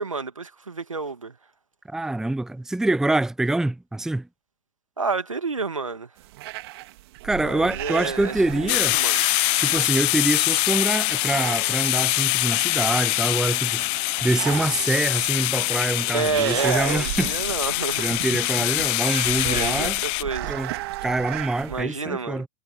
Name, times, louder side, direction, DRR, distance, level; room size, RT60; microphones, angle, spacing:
voice 1, 0.0-1.4 5.0-6.1 7.4-9.2 16.1-18.0 19.4-20.6 21.7-22.4, right 4 dB, 80° right, 2.1 m, -29 dB
voice 2, 1.9-4.3 7.2-9.0 9.6-13.9 14.2-17.3 18.0-20.0 20.4-20.7 21.0-22.5, right 2 dB, 5° right, 0.8 m, -25 dB
sound 1, 6.2-21.8, right 18 dB, 50° right, 2.8 m, -36 dB
sound 2, 8.7-20.2, left 33 dB, 35° left, 0.7 m, -24 dB
figure-of-eight pair, 95°, 17 cm